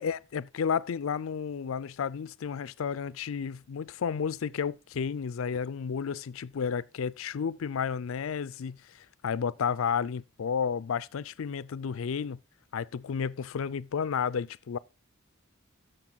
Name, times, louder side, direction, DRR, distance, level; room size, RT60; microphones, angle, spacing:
voice 1, 0.0-12.4 12.7-14.8, left 6 dB, 75° left, 0.4 m, -32 dB
13.0 x 6.6 x 4.0 m
head